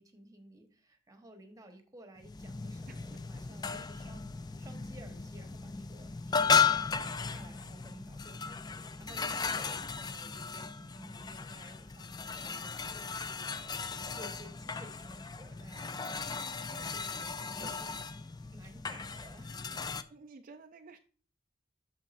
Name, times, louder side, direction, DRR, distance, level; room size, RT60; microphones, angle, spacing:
voice 1, 0.0-4.2 4.6-17.9 18.5-19.9, right 1 dB, 20° right, 6 dB, 1.1 m, -55 dB
sound 1, 2.2-20.0, left 5 dB, 20° left, 0.3 m, -35 dB
voice 2, 2.9-3.2 3.7-3.9 17.6-18.0 20.1-21.0, right 4 dB, 45° right, 5 dB, 0.4 m, -52 dB
8.6 x 6.5 x 2.5 m, 0.43 s
head